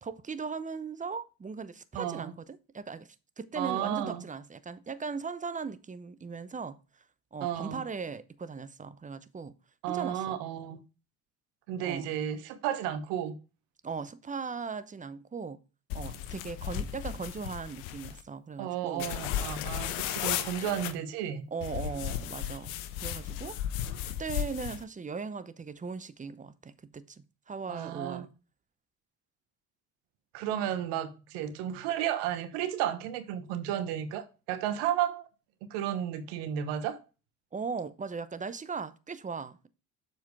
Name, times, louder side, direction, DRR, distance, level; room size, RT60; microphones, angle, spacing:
voice 1, 0.0-6.8 7.3-9.5 9.9-10.4 11.8-12.1 13.8-15.6 15.9-19.1 21.5-22.7 23.0-23.6 24.0-28.3 37.5-39.7, right 5 dB, 20° right, 0.8 m, -38 dB
voice 2, 1.9-2.3 3.5-4.2 7.4-7.8 9.8-10.8 11.7-13.4 18.6-21.4 27.7-28.3 30.3-35.3 35.7-37.0, right 10 dB, 70° right, 1.2 m, -33 dB
sound 1, 15.9-18.2 19.0-20.9 21.6-24.8, left 11 dB, 75° left, 0.9 m, -35 dB
7.2 x 4.5 x 4.7 m
hypercardioid pair, 65°, 42 cm